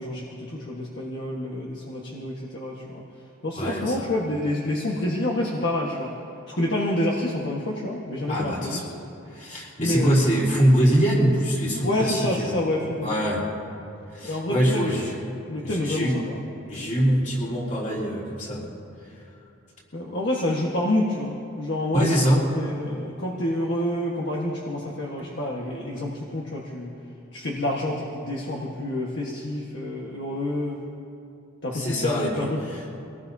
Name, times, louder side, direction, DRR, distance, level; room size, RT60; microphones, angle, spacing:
voice 1, 0.0-3.0 3.4-6.1 6.5-8.8 9.8-10.1 11.8-13.3 14.2-15.0 15.5-16.4 19.9-26.9 27.3-30.8 31.6-32.6, left 1 dB, 55° left, -3 dB, 1.5 m, -28 dB
voice 2, 3.6-4.0 8.3-8.8 9.3-12.5 13.0-13.5 14.1-15.1 15.6-16.2 16.7-18.7 21.9-22.4 31.7-32.8, equal, 35° left, -5 dB, 3.8 m, -23 dB
24.5 x 18.5 x 2.8 m, 2.6 s
head